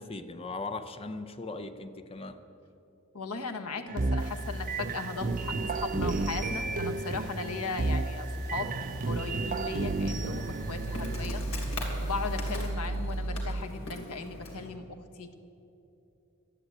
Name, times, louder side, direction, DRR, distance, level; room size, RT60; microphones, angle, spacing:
voice 1, 0.0-2.4 12.5-12.7, left 3 dB, 25° left, 9 dB, 0.6 m, -39 dB
voice 2, 3.1-8.7 9.0-11.5 12.0-15.4, left 4 dB, 85° left, 7 dB, 1.2 m, -37 dB
sound 1, 3.9-13.6, right 2 dB, 35° right, 0.5 m, -32 dB
sound 2, 4.2-12.7, right 1 dB, 20° right, 3.4 m, -50 dB
Insect, 8.6-14.7, left 1 dB, 65° left, 2.9 m, -42 dB
12.5 x 11.0 x 8.2 m, 2.9 s
head